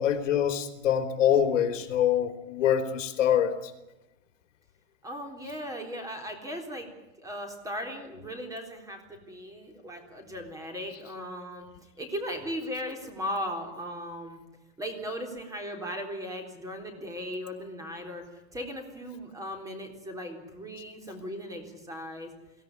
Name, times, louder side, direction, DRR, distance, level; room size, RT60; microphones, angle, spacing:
voice 1, 0.0-3.7, left 9 dB, 85° left, 8 dB, 3.6 m, -25 dB
voice 2, 5.0-6.9 7.2-11.7 12.0-14.4 14.8-18.2 18.5-22.3, equal, 10° right, 4 dB, 3.7 m, -37 dB
23.0 x 17.0 x 9.6 m, 0.99 s
supercardioid pair, 160°, 37 cm